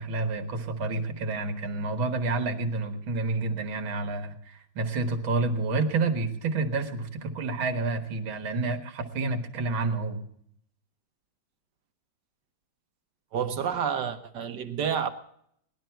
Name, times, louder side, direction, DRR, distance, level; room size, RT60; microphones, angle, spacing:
voice 1, 0.0-10.3, right 3 dB, 85° right, 2.2 m, -29 dB
voice 2, 13.3-15.1, right 7 dB, 65° right, 1.6 m, -29 dB
19.0 x 12.0 x 4.5 m
omnidirectional pair, 2.1 m